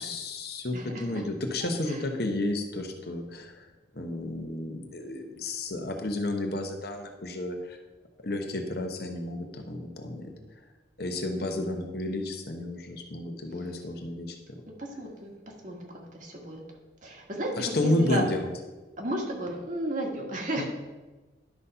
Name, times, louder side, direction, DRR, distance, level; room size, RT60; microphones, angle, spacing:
voice 1, 0.0-3.7 3.9-7.8 8.2-10.3 11.0-14.6 17.6-18.5 20.6-20.7, left 1 dB, 55° left, 4 dB, 1.0 m, -31 dB
voice 2, 0.7-1.2 1.6-2.0 11.4-11.7 14.8-15.3 15.6-16.6 17.0-18.2 19.0-20.7, right 1 dB, 40° right, 0 dB, 1.5 m, -34 dB
11.0 x 4.1 x 5.5 m, 1.2 s
head